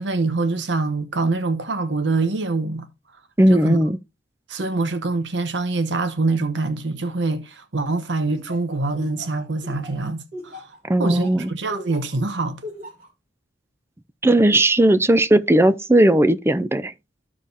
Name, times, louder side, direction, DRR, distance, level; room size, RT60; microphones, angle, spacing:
voice 1, 0.0-2.9 3.5-3.8 4.5-10.7 11.0-12.6, right 3 dB, 75° right, 0.9 m, -24 dB
voice 2, 3.4-4.0 10.9-11.5 14.2-16.9, right 1 dB, 15° right, 0.5 m, -17 dB
Laughter, 8.3-12.1 12.6-13.1, left 1 dB, 55° right, 3.1 m, -37 dB
14.5 x 4.9 x 2.7 m
head